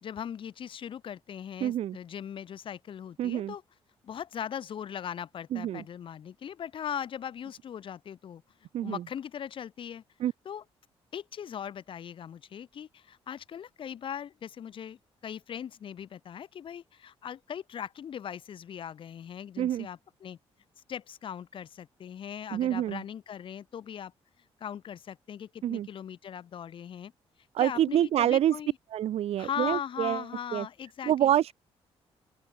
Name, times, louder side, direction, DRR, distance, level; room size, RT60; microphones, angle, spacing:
voice 1, 0.0-3.6 4.0-8.4 8.8-10.0 10.4-10.6 11.1-20.4 20.9-24.1 24.6-27.1 27.6-28.8 29.4-31.3, left 8 dB, 55° left, 4.3 m, -39 dB
voice 2, 1.6-2.0 3.2-3.5 5.5-5.8 8.7-9.0 10.2-10.3 19.6-19.9 22.5-23.0 25.6-25.9 27.5-28.5 28.9-30.2 30.5-30.7 31.0-31.5, right 11 dB, 75° right, 3.1 m, -27 dB
open air
cardioid pair, 140°, 11 cm